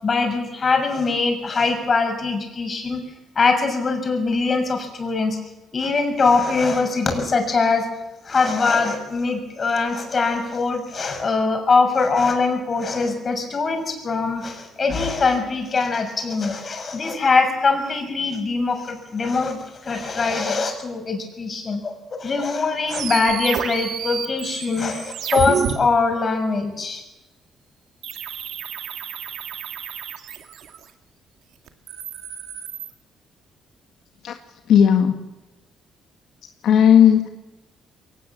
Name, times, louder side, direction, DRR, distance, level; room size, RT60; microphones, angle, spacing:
voice 1, 0.0-3.0 3.3-5.4 5.7-7.9 8.2-27.0, left 4 dB, 40° left, 5 dB, 6.7 m, -22 dB
sound 1, 22.9-25.7 28.0-30.8 31.7-32.9, right 8 dB, 75° right, 2.4 m, -30 dB
voice 2, 34.7-35.2 36.6-37.3, left 9 dB, 75° left, 5 dB, 1.7 m, -14 dB
22.5 x 19.0 x 7.5 m, 1.0 s
cardioid pair, 90°, 0 cm